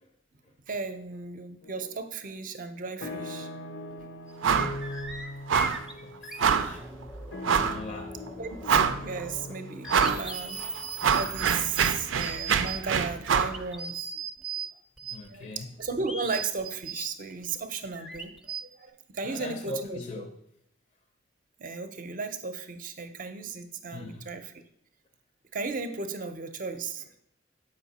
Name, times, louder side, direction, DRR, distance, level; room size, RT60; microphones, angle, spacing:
voice 1, 0.7-3.5 8.4-10.8 11.1-14.1 15.3-20.2 21.6-24.5 25.5-27.1, right 4 dB, 45° right, 8 dB, 0.6 m, -35 dB
sound 1, 1.6-2.2 2.5-12.6, left 2 dB, 85° left, 0.8 m, -41 dB
sound 2, 3.9-4.0 4.3-8.8 9.1-14.7 15.0-18.6, right 4 dB, 5° right, 0.6 m, -39 dB
sound 3, 4.4-4.8 5.0-5.2 5.5-5.8 6.4-6.8 7.4-7.8 8.3-8.4 8.6-9.2 9.9-10.2 10.6-13.6, right 7 dB, 85° right, 0.5 m, -25 dB
voice 2, 5.7-6.8 7.6-8.2 15.1-15.6 19.2-20.3 23.9-24.3, left 2 dB, 35° left, 4 dB, 0.6 m, -40 dB
7.4 x 5.4 x 4.1 m, 0.76 s
head